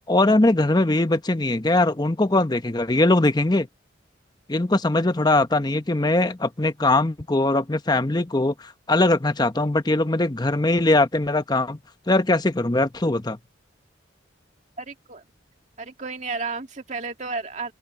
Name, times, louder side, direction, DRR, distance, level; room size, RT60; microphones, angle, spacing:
voice 1, 0.1-3.7 4.5-11.8 12.1-13.4, left 2 dB, 20° left, 0.8 m, -21 dB
voice 2, 14.8-15.2 15.8-17.7, right 4 dB, 40° right, 2.1 m, -32 dB
open air
head